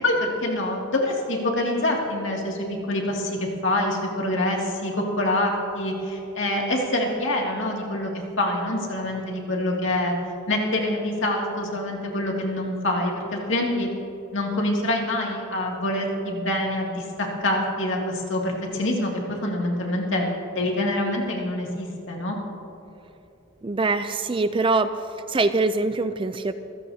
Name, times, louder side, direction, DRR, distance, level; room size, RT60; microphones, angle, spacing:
voice 1, 0.0-8.1 8.4-10.1 10.5-13.9 14.3-20.2 20.6-22.4, left 1 dB, 60° left, -1 dB, 2.4 m, -25 dB
voice 2, 23.6-24.9 25.3-26.5, right 3 dB, 25° right, 11 dB, 0.4 m, -23 dB
25.5 x 16.0 x 2.8 m, 2.8 s
head